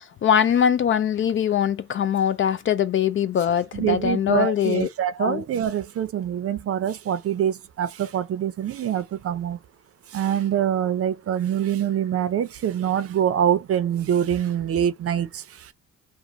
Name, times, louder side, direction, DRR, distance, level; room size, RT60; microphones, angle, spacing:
voice 1, 0.0-4.9 5.2-5.4, left 9 dB, 45° left, 0.4 m, -22 dB
voice 2, 3.7-9.6 10.1-15.7, right 10 dB, 50° right, 0.6 m, -25 dB
2.9 x 2.2 x 2.5 m
cardioid pair, 90°, 30 cm